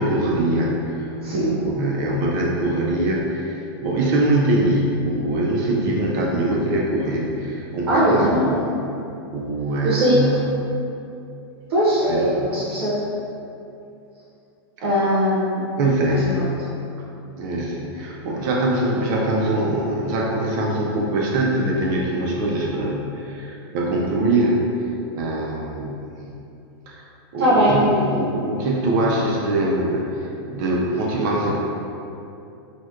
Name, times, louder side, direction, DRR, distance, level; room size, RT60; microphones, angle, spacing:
voice 1, 0.0-8.7 9.3-10.4 12.1-12.7 14.8-14.9 15.8-16.3 17.4-24.6 25.1-26.2 26.9-27.1 27.3-30.0 30.4-31.6, right 1 dB, 45° right, -2 dB, 0.5 m, -23 dB
voice 2, 1.2-1.6 7.9-8.5 9.8-10.2 11.7-12.9 14.8-15.6 16.1-16.5 27.4-28.0, equal, 80° right, -8 dB, 0.8 m, -20 dB
4.2 x 2.2 x 2.3 m, 2.7 s
supercardioid pair, 140°, 14 cm